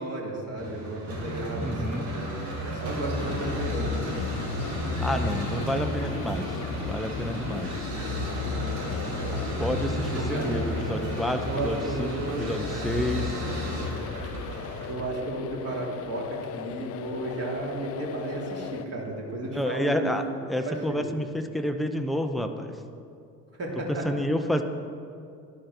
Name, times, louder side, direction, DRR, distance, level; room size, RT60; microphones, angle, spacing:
voice 1, 0.0-2.3 2.6-4.0 10.1-10.5 11.5-12.4 14.9-21.1 23.6-24.1, right 2 dB, 30° right, -2 dB, 3.1 m, -33 dB
sound 1, 0.6-14.9, equal, 55° right, 3.0 m, -32 dB
voice 2, 1.6-2.1 5.0-7.7 9.3-13.3 19.5-22.8 24.0-24.6, equal, ahead, 6 dB, 0.7 m, -30 dB
sound 2, 3.2-18.9, left 10 dB, 30° left, 0.5 m, -38 dB
12.0 x 10.5 x 4.4 m, 2.4 s
figure-of-eight pair, 60°, 49 cm